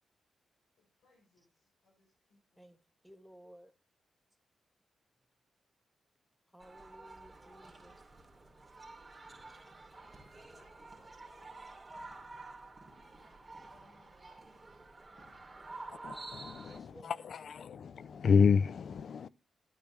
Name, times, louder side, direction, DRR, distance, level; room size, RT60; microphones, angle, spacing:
voice 1, 0.8-2.6 10.4-11.8 13.2-16.1, left 2 dB, 85° left, 7.3 m, -70 dB
voice 2, 2.6-3.7 6.5-8.0 16.6-17.3, right 1 dB, ahead, 1.4 m, -57 dB
sound 1, 6.6-16.8, right 2 dB, 25° right, 2.6 m, -50 dB
voice 3, 15.9-19.3, left 6 dB, 70° left, 0.4 m, -30 dB
12.0 x 9.1 x 3.1 m
cardioid pair, 55°, 0 cm